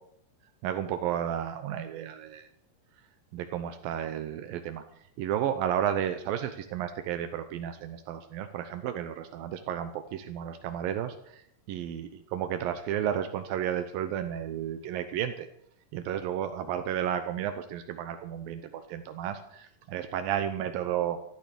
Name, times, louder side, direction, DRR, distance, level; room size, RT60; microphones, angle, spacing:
voice 1, 0.6-2.5 3.3-4.8 5.2-11.4 11.7-15.5 15.9-21.2, right 10 dB, 80° right, 8 dB, 2.7 m, -32 dB
14.0 x 13.0 x 6.8 m, 0.71 s
omnidirectional pair, 4.1 m